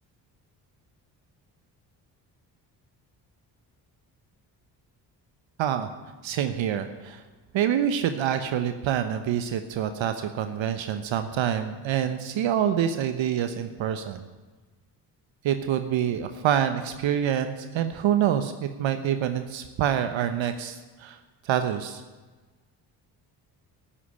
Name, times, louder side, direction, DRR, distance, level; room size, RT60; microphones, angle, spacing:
voice 1, 5.6-5.9 6.2-7.2 7.5-14.2 15.4-21.2 21.4-22.0, right 9 dB, 65° right, 9 dB, 1.1 m, -26 dB
12.5 x 8.7 x 9.9 m, 1.3 s
hypercardioid pair, 55°, 50 cm